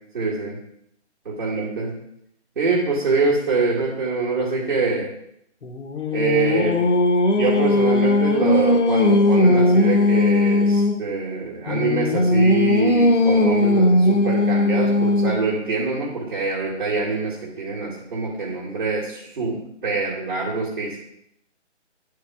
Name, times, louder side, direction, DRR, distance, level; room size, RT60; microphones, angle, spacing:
voice 1, 0.1-0.6 1.3-1.9 2.6-5.1 6.1-6.8 7.4-19.6 19.8-21.0, right 3 dB, 45° right, -7 dB, 2.1 m, -24 dB
Singing, 5.6-11.0 11.7-15.5, left 2 dB, 85° left, 0.9 m, -18 dB
11.5 x 4.7 x 2.4 m, 0.75 s
figure-of-eight pair, 165°, 35 cm